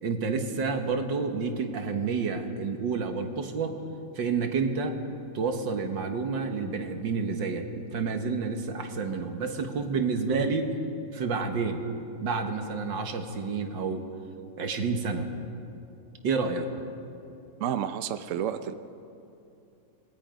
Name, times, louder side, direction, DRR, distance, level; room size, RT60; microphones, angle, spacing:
voice 1, 0.0-3.8 4.2-5.0 5.3-10.7 11.1-11.8 12.2-14.1 14.6-15.3 16.2-16.7, right 4 dB, 85° right, 5 dB, 2.1 m, -29 dB
voice 2, 17.6-18.7, right 9 dB, 60° right, 10 dB, 0.9 m, -30 dB
27.5 x 20.5 x 5.2 m, 2.7 s
omnidirectional pair, 2.0 m